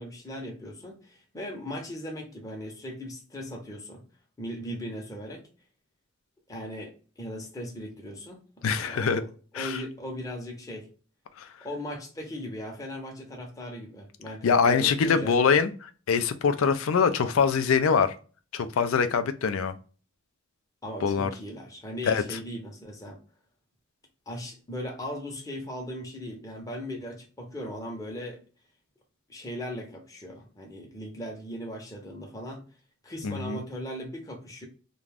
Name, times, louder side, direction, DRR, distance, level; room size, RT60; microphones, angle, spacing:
voice 1, 0.0-4.0 4.4-5.5 6.5-10.9 11.6-15.4 20.8-23.2 24.3-28.4 29.3-32.6 33.0-34.7, equal, 15° left, 0.7 m, -38 dB
voice 2, 8.6-9.2 9.5-9.8 11.4-11.5 14.4-18.1 18.5-19.8 21.0-21.3 22.1-22.2 33.2-33.6, left 6 dB, 90° left, 0.4 m, -24 dB
2.5 x 2.2 x 3.2 m
head